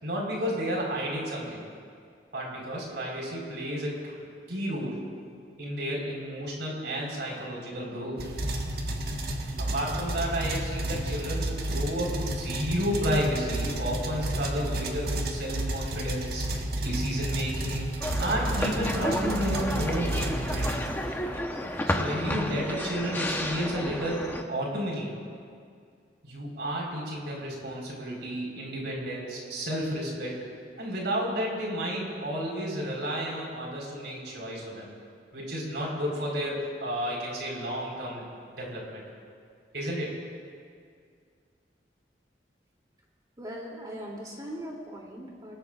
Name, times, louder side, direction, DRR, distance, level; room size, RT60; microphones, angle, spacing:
voice 1, 0.0-1.6 2.3-4.1 4.5-5.0 5.6-8.2 9.6-17.9 18.2-20.7 21.9-25.2 26.2-30.3 30.8-34.9 35.3-38.2 38.5-39.0 39.7-40.2, equal, 85° right, -3 dB, 4.5 m, -32 dB
sound 1, 8.2-21.4, right 1 dB, 60° right, 1.4 m, -31 dB
sound 2, 18.0-24.4, left 1 dB, 10° left, 0.9 m, -32 dB
voice 2, 43.4-45.6, equal, 20° right, -2 dB, 2.9 m, -40 dB
29.0 x 19.0 x 2.5 m, 2.2 s
head